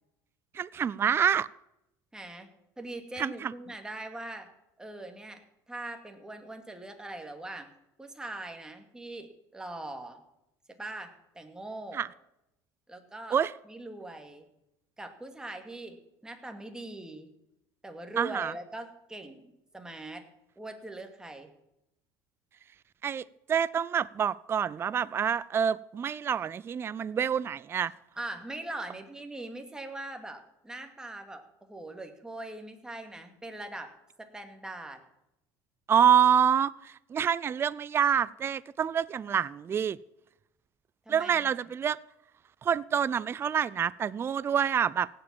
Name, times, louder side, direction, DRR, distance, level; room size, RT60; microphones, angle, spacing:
voice 1, 0.5-1.5 3.2-3.5 11.9-12.1 13.3-13.5 18.2-18.5 23.0-27.9 35.9-40.0 41.1-42.0 42.6-45.1, right 8 dB, 25° right, 19 dB, 0.4 m, -27 dB
voice 2, 2.1-2.5 2.8-4.5 4.8-5.4 5.7-7.7 8.0-10.2 10.8-12.0 12.9-13.4 13.7-14.5 15.0-16.0 16.2-17.3 17.8-20.2 20.6-21.5 28.2-33.9 34.2-35.0 41.1-41.5, right 2 dB, 10° right, 5 dB, 2.3 m, -41 dB
17.0 x 7.8 x 7.4 m, 0.85 s
supercardioid pair, 105°, 9 cm